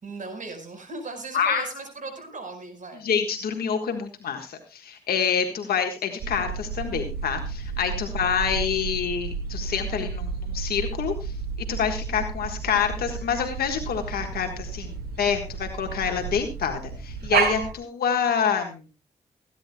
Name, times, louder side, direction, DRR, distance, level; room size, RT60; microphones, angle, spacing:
voice 1, 0.0-3.1 7.9-8.2, right 3 dB, 55° right, 6 dB, 4.8 m, -38 dB
voice 2, 1.3-1.7 3.0-11.3 11.7-18.8, left 7 dB, 80° left, 4 dB, 1.5 m, -27 dB
sound 1, 6.2-17.7, right 5 dB, 85° right, 1.9 m, -31 dB
24.0 x 10.0 x 2.2 m, 0.30 s
supercardioid pair, 40°, 16 cm